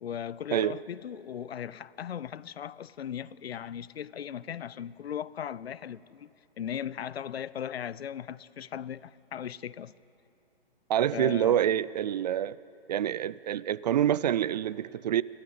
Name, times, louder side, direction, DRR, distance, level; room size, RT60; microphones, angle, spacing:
voice 1, 0.0-6.3 6.6-9.9 11.1-11.6, left 9 dB, 75° left, 0.6 m, -38 dB
voice 2, 10.9-12.6 12.9-15.2, right 10 dB, 40° right, 0.4 m, -26 dB
29.5 x 13.0 x 8.3 m
hypercardioid pair, 135°, 31 cm